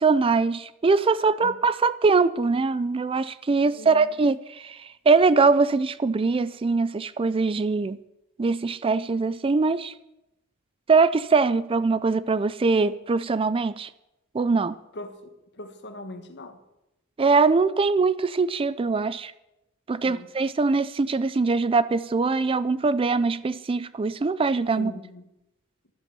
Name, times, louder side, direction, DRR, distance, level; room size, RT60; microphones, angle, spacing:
voice 1, 0.0-8.0 8.4-9.9 10.9-13.9 14.3-14.8 17.2-19.3 19.9-24.9, right 4 dB, 25° right, 0.4 m, -22 dB
voice 2, 3.7-4.1 14.9-16.6 20.0-20.3 24.7-25.3, left 1 dB, 55° left, 1.5 m, -40 dB
12.0 x 11.0 x 6.8 m
head